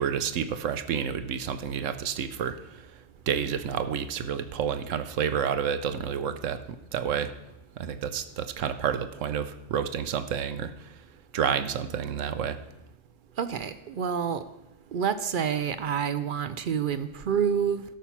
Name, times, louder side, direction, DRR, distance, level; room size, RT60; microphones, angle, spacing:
voice 1, 0.0-2.6 3.3-6.6 6.9-7.3 7.8-10.7 11.3-12.6, right 8 dB, 75° right, 11 dB, 1.0 m, -29 dB
voice 2, 13.4-14.4 14.9-17.8, right 7 dB, 60° right, 13 dB, 0.5 m, -28 dB
13.0 x 5.6 x 5.8 m, 0.91 s
omnidirectional pair, 1.3 m